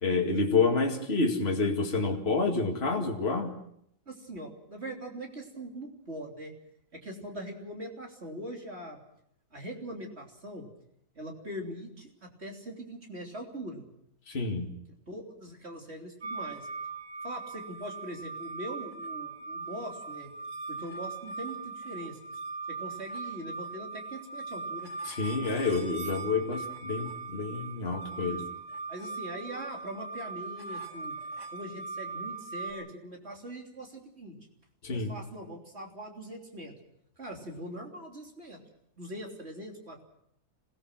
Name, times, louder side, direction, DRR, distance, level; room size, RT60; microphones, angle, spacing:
voice 1, 0.0-3.5 14.3-14.7 25.1-28.5 34.8-35.2, left 4 dB, 40° left, 1 dB, 2.5 m, -28 dB
voice 2, 4.1-6.5 6.9-9.0 9.5-10.7 11.2-13.9 15.1-16.7 17.2-20.3 20.7-22.2 22.8-24.9 28.1-28.5 28.9-31.2 31.5-34.4 34.9-36.7 37.2-38.6 39.0-40.0, right 1 dB, 40° right, 0 dB, 3.6 m, -42 dB
sound 1, 16.2-32.7, right 4 dB, 80° right, 2.7 m, -40 dB
27.0 x 18.0 x 6.1 m, 0.73 s
omnidirectional pair, 1.7 m